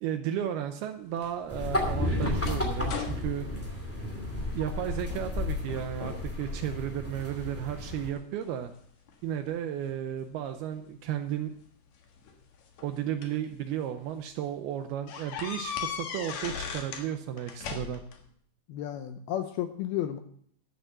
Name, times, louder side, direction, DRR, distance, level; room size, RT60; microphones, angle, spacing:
voice 1, 0.0-3.5 4.5-8.7 9.2-11.5 12.8-18.0, right 10 dB, 80° right, 8 dB, 2.4 m, -34 dB
sound 1, 1.2-4.6 5.0-5.4 5.7-6.3 6.8-7.5 8.1-9.5 10.7-10.8 12.0-13.4 14.0-14.1 14.4-14.5 15.1-17.1 17.4-18.2, left 7 dB, 60° left, 2.0 m, -39 dB
sound 2, 1.5-8.1, left 2 dB, 15° left, 0.5 m, -32 dB
voice 2, 18.7-20.2, left 11 dB, 80° left, 8 dB, 2.3 m, -32 dB
13.0 x 6.9 x 7.4 m, 0.63 s
omnidirectional pair, 5.1 m